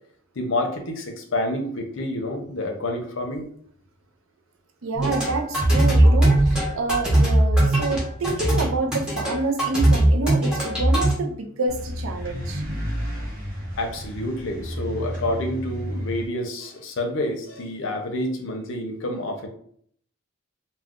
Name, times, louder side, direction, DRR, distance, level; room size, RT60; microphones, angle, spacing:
voice 1, 0.4-3.5 13.8-19.5, left 1 dB, 60° left, 4 dB, 0.5 m, -28 dB
voice 2, 4.8-12.6, right 3 dB, 70° right, 4 dB, 0.5 m, -28 dB
sound 1, 5.0-11.1, right 1 dB, 5° right, 0.7 m, -19 dB
sound 2, 11.7-16.3, equal, 40° right, 0.8 m, -31 dB
2.3 x 2.2 x 3.6 m, 0.62 s
head